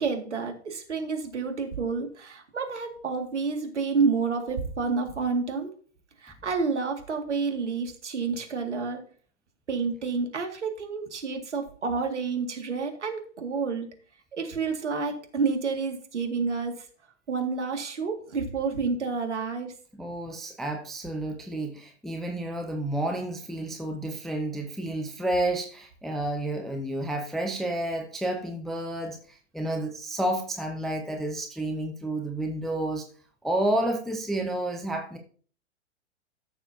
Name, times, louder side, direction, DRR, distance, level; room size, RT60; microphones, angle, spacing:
voice 1, 0.0-5.7 6.2-9.0 9.7-13.9 14.3-16.8 17.3-19.7, right 4 dB, 70° right, 4 dB, 2.1 m, -29 dB
voice 2, 19.9-33.0 33.4-35.2, right 1 dB, ahead, 3 dB, 0.4 m, -30 dB
13.5 x 6.7 x 2.7 m, 0.43 s
figure-of-eight pair, 105°, 37 cm